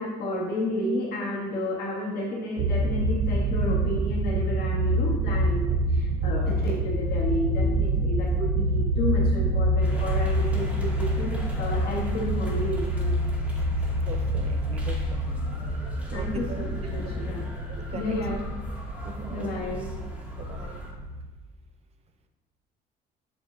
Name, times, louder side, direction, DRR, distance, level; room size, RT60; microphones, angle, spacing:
voice 1, 0.0-13.1 16.1-17.5 17.9-18.5 19.3-19.9, left 1 dB, 70° left, -3 dB, 1.8 m, -31 dB
sound 1, 2.6-21.3, right 1 dB, 90° right, 0.5 m, -27 dB
sound 2, 9.8-20.9, equal, 10° right, 1.9 m, -37 dB
voice 2, 14.0-15.4 16.1-17.1 17.7-18.1 19.0-19.5 20.4-20.9, right 6 dB, 40° right, 7 dB, 0.6 m, -41 dB
8.2 x 5.1 x 2.5 m, 1.2 s
cardioid pair, 110°, 17 cm